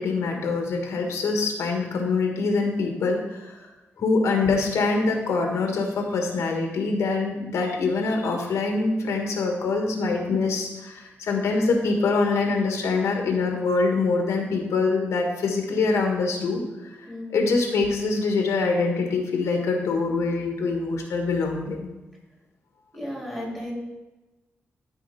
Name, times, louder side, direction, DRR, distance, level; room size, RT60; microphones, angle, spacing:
voice 1, 0.0-3.6 4.0-16.6 17.0-17.1 17.3-21.9, left 3 dB, 90° left, 2 dB, 1.5 m, -24 dB
voice 2, 22.9-23.7, left 1 dB, 5° right, -3 dB, 2.7 m, -34 dB
12.5 x 4.8 x 4.2 m, 1.1 s
wide cardioid pair, 140°, 5 cm